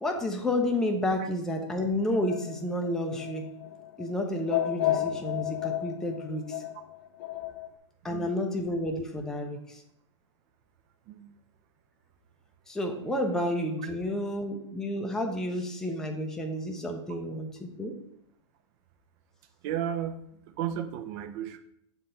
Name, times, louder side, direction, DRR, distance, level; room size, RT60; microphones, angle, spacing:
voice 1, 0.0-3.5 4.0-6.6 8.0-9.8 12.7-17.9, left 1 dB, 5° left, 2 dB, 0.6 m, -30 dB
sound 1, 2.1-7.7, left 13 dB, 45° left, 0.6 m, -33 dB
voice 2, 19.6-20.2 20.6-21.6, right 10 dB, 40° right, 8 dB, 0.6 m, -33 dB
6.6 x 3.9 x 4.2 m, 0.73 s
hypercardioid pair, 140°, 16 cm